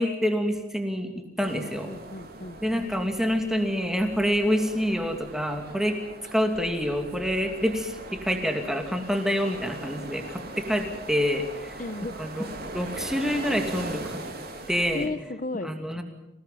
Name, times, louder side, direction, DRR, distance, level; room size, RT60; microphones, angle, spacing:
voice 1, 0.0-1.9 2.6-6.0 6.3-11.8 12.2-12.5 12.7-14.2 14.7-15.1 15.6-16.0, equal, ahead, 4 dB, 2.6 m, -27 dB
sound 1, 1.4-15.1, right 2 dB, 50° right, 3.4 m, -40 dB
voice 2, 1.5-2.6 11.8-12.2 14.9-15.7, left 2 dB, 40° left, 12 dB, 0.9 m, -34 dB
26.5 x 18.0 x 7.6 m, 0.97 s
head